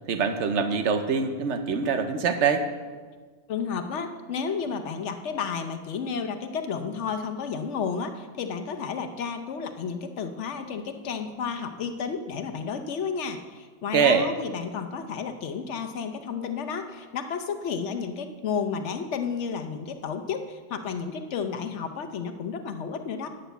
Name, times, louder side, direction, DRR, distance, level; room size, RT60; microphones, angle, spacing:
voice 1, 0.1-2.7 13.9-14.3, right 5 dB, 85° right, 8 dB, 1.1 m, -24 dB
voice 2, 3.5-23.3, left 6 dB, 85° left, 7 dB, 1.1 m, -32 dB
10.0 x 6.3 x 8.1 m, 1.5 s
omnidirectional pair, 1.2 m